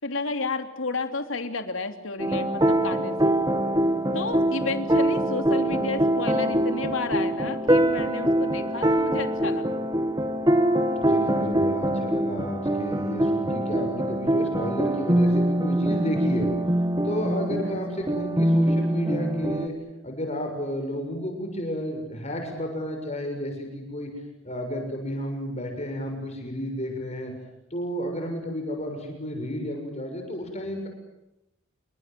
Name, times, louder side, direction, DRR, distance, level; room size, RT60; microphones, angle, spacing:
voice 1, 0.0-3.3 4.1-9.8 17.5-17.8, left 3 dB, 70° left, 7 dB, 3.1 m, -31 dB
sound 1, 2.2-19.7, right 1 dB, 20° right, 2.0 m, -24 dB
voice 2, 11.0-16.5 17.0-19.7 20.0-24.1 24.4-27.3 27.7-30.9, equal, 35° left, 4 dB, 6.7 m, -31 dB
29.0 x 25.0 x 7.7 m, 0.90 s
head